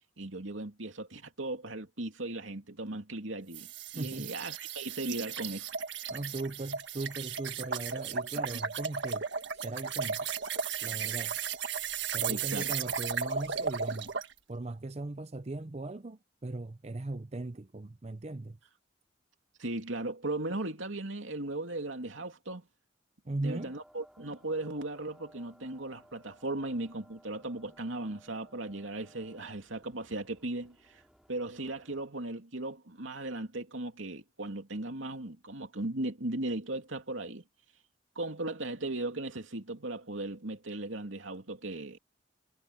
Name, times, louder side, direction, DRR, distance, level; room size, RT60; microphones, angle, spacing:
voice 1, 0.2-5.7 8.5-8.6 12.3-12.9 19.6-22.7 23.4-31.0 31.3-37.4 38.1-42.0, right 2 dB, 90° right, 2.8 m, -37 dB
sound 1, 3.5-14.3, right 6 dB, 70° right, 1.6 m, -35 dB
voice 2, 4.0-4.3 6.1-9.3 9.5-10.3 10.8-11.4 12.0-14.1 14.5-18.6 23.2-23.7, right 2 dB, 35° right, 0.6 m, -38 dB
sound 2, 23.6-32.1, equal, ahead, 5.0 m, -61 dB
head